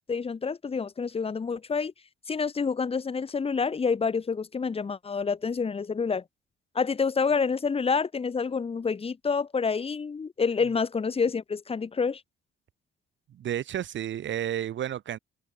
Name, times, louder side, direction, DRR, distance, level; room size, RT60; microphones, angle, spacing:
voice 1, 0.1-1.9 2.3-6.2 6.7-12.2, left 5 dB, 30° left, 1.1 m, -28 dB
voice 2, 13.3-15.2, right 11 dB, 70° right, 6.0 m, -31 dB
open air
cardioid pair, 90°, 20 cm